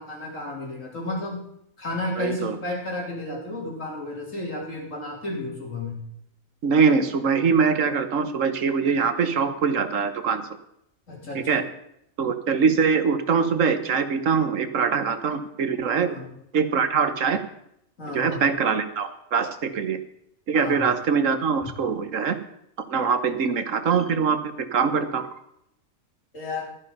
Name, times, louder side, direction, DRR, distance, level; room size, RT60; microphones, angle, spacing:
voice 1, 0.0-1.4 1.8-6.0 11.1-11.6 16.0-16.3 18.0-18.5 20.5-20.9 26.3-26.7, left 2 dB, 75° left, -2 dB, 4.2 m, -32 dB
voice 2, 2.2-2.5 6.6-10.5 11.3-11.6 12.2-16.1 16.5-17.4 18.1-20.0 20.5-22.4 22.9-24.4 24.7-25.3, right 5 dB, 75° right, 10 dB, 1.5 m, -23 dB
12.5 x 10.5 x 5.5 m, 0.76 s
omnidirectional pair, 1.3 m